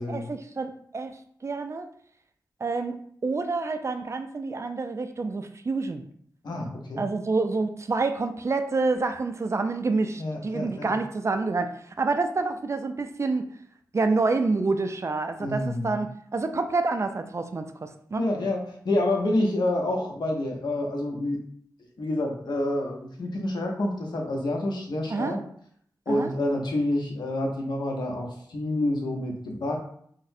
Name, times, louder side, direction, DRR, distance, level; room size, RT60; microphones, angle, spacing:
voice 1, 0.0-1.9 2.6-6.1 7.0-13.5 13.9-18.2 25.1-25.4 26.1-26.3, right 3 dB, 40° right, 7 dB, 0.3 m, -28 dB
voice 2, 6.4-7.0 10.2-11.0 15.4-16.0 18.2-21.4 22.0-25.4 26.1-29.8, left 1 dB, 70° left, 0 dB, 0.8 m, -28 dB
4.0 x 2.1 x 2.7 m, 0.63 s
wide cardioid pair, 75°, 8 cm